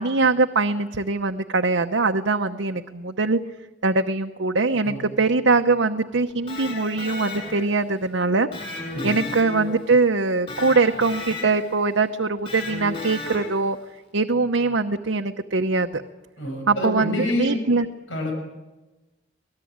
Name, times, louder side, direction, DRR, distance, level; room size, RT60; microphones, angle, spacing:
voice 1, 0.0-3.4 3.8-8.5 9.0-13.8 14.1-16.0 16.7-17.9, right 3 dB, 80° right, 4 dB, 1.0 m, -22 dB
voice 2, 4.8-5.1 8.9-9.3 16.4-17.6 18.1-18.3, left 1 dB, 90° left, 2 dB, 7.2 m, -27 dB
Electric guitar, 6.3-7.8 8.5-9.9 10.5-11.7 12.5-13.7, left 3 dB, 30° left, 7.1 m, -34 dB
25.5 x 19.5 x 8.8 m, 1.1 s
head